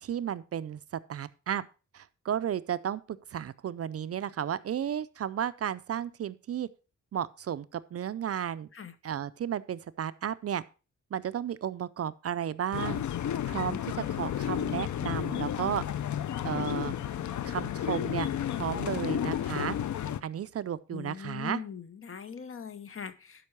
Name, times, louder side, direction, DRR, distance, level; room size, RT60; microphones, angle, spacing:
voice 1, 0.0-0.8 1.1-1.7 1.9-6.7 7.1-8.7 9.0-10.6 11.1-13.0 13.4-15.8 16.4-16.9 17.4-19.8 20.2-21.6, right 9 dB, 50° right, 0.4 m, -33 dB
sound 1, 12.7-20.2, left 10 dB, 70° left, 0.6 m, -32 dB
voice 2, 20.9-23.5, left 7 dB, 45° left, 0.9 m, -41 dB
12.0 x 5.4 x 4.6 m
wide cardioid pair, 135°, 31 cm